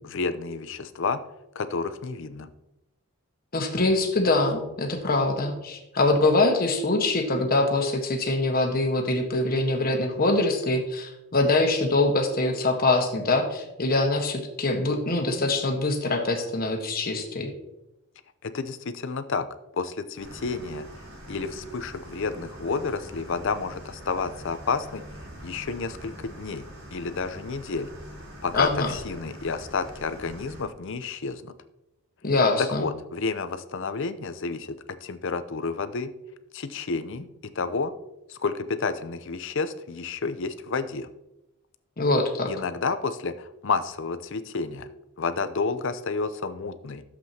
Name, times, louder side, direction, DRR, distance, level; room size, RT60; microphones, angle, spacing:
voice 1, 0.0-1.2 1.6-2.5 18.4-19.5 19.7-20.9 21.3-25.0 25.4-27.9 28.4-31.5 32.6-36.1 36.5-37.3 37.5-37.9 38.3-41.1 42.5-44.9 45.2-47.0, left 4 dB, 60° left, 11 dB, 0.6 m, -30 dB
voice 2, 3.5-17.5 28.5-28.9 32.2-32.9 42.0-42.5, left 2 dB, 45° left, 3 dB, 1.3 m, -24 dB
sound 1, 20.2-30.6, equal, 85° right, 3.7 m, -44 dB
12.0 x 7.6 x 2.9 m, 0.91 s
head